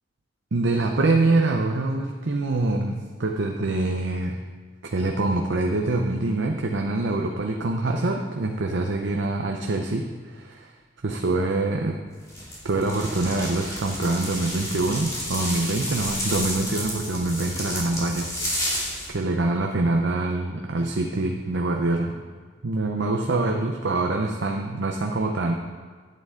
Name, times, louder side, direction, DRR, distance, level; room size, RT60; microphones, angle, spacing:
voice 1, 0.5-4.4 4.9-10.7 11.0-12.0 12.6-18.7 19.1-22.2 22.6-25.5, right 2 dB, 85° right, 2 dB, 0.7 m, -25 dB
sound 1, 12.3-19.1, equal, 20° left, 2.5 m, -31 dB
11.0 x 8.9 x 3.7 m, 1.5 s
head